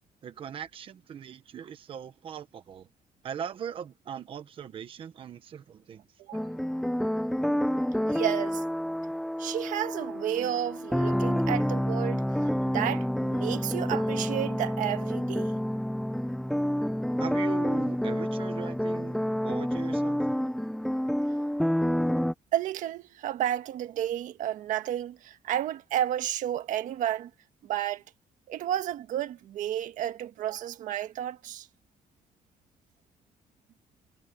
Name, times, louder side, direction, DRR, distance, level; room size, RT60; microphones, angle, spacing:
voice 1, 0.2-2.9 3.2-6.0 17.2-19.2 19.4-20.2, right 8 dB, 40° right, 1.2 m, -39 dB
sound 1, 6.3-22.3, equal, ahead, 0.8 m, -28 dB
voice 2, 8.1-8.6 9.4-12.2 12.7-15.6 22.5-27.3 27.6-28.0 28.5-31.7, right 11 dB, 75° right, 1.6 m, -31 dB
cardioid pair, 180°, 13 cm